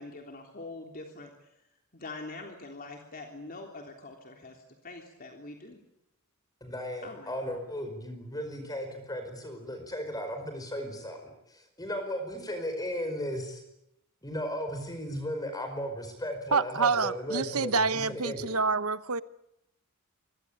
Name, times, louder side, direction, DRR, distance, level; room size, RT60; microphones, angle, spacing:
voice 1, 0.0-1.5 1.9-5.8 7.0-7.3, left 2 dB, 45° left, 2 dB, 3.4 m, -44 dB
voice 2, 6.6-13.6 14.2-18.5, equal, 20° left, 6 dB, 4.9 m, -36 dB
voice 3, 16.5-19.2, right 4 dB, 85° right, 14 dB, 1.1 m, -27 dB
27.0 x 23.0 x 8.7 m, 0.83 s
head